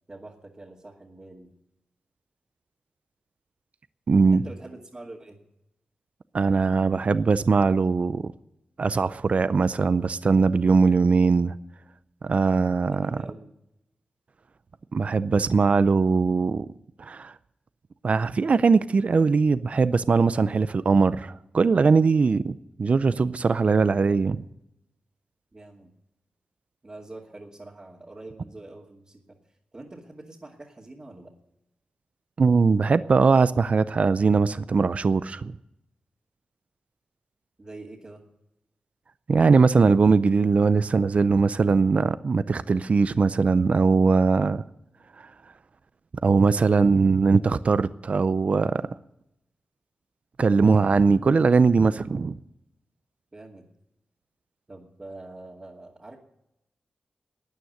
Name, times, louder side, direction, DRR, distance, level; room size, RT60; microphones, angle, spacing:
voice 1, 0.1-1.5 4.3-5.4 12.8-13.5 25.5-25.9 26.8-29.4 29.7-31.3 37.6-38.2 53.3-53.7 54.7-56.2, right 2 dB, 30° right, 2.4 m, -44 dB
voice 2, 4.1-4.4 6.3-8.3 8.8-11.6 12.2-13.2 14.9-16.7 17.0-17.3 18.0-24.4 32.4-35.6 39.3-44.6 46.2-48.8 50.4-52.4, right 4 dB, 55° right, 0.5 m, -21 dB
13.0 x 9.4 x 9.5 m
cardioid pair, 65°, 3 cm